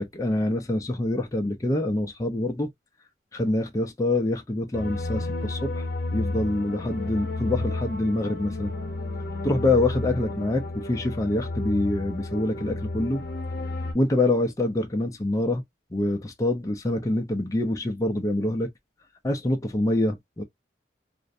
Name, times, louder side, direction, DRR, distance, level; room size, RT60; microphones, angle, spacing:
voice 1, 0.0-2.7 3.3-5.9 6.1-8.7 9.4-13.2 13.9-15.6 15.9-18.7 19.2-20.4, left 2 dB, 20° left, 0.4 m, -25 dB
sound 1, 4.7-13.9, left 2 dB, 65° left, 0.8 m, -32 dB
2.5 x 2.0 x 2.5 m
head